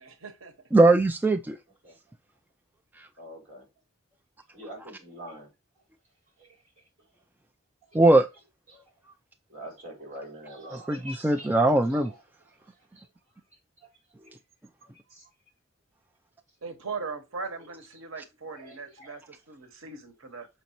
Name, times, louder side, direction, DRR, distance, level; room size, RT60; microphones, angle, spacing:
voice 1, 0.0-0.5 16.6-20.5, right 4 dB, 85° right, 1.0 m, -39 dB
voice 2, 0.7-1.6 3.0-3.1 7.9-8.3 10.7-12.1, right 2 dB, 10° right, 0.3 m, -20 dB
voice 3, 3.2-3.6 4.5-5.5 6.4-6.5 8.7-8.8 9.5-12.2 13.0-13.1 15.1-15.2 18.6-19.1, right 1 dB, 35° right, 4.0 m, -44 dB
6.6 x 5.2 x 2.9 m
head